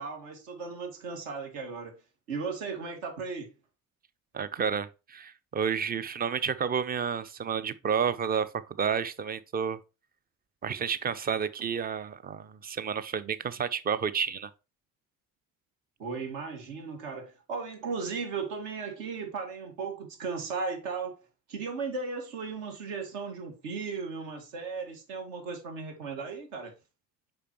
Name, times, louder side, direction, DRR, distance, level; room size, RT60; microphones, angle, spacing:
voice 1, 0.0-1.9 2.3-3.5 16.0-21.2 21.5-26.7, right 4 dB, 60° right, 2.1 m, -36 dB
voice 2, 4.3-8.5 8.8-9.8 10.6-14.5, right 7 dB, 20° right, 0.6 m, -30 dB
6.7 x 5.3 x 3.0 m
figure-of-eight pair, 55°, 43 cm